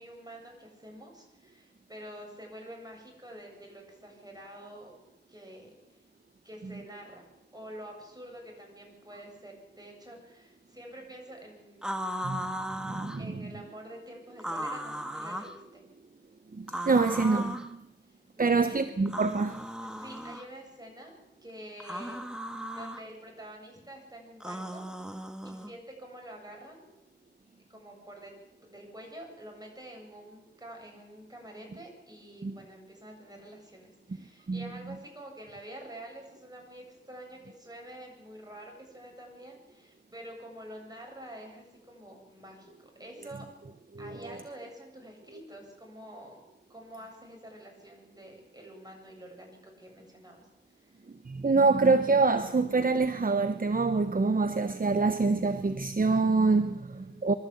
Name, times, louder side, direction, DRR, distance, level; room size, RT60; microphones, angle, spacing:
voice 1, 0.0-4.9 5.3-5.7 6.4-12.2 13.2-15.8 18.4-18.8 19.8-21.1 21.4-22.2 22.7-24.8 25.4-26.9 27.7-28.4 28.6-43.5 44.0-46.4 46.7-50.4 50.7-51.0 56.9-57.4, right 1 dB, 20° right, 8.0 m, -47 dB
sound 1, 11.8-13.2 14.4-15.6 16.7-17.7 19.1-20.5 21.8-23.0 24.4-25.7, equal, 5° right, 1.7 m, -36 dB
voice 2, 12.2-13.5 16.5-17.8 18.4-19.6 32.4-32.6 34.5-34.7 43.9-44.4 51.2-57.3, right 3 dB, 50° right, 1.0 m, -26 dB
23.5 x 13.0 x 8.4 m
wide cardioid pair, 60°, 19 cm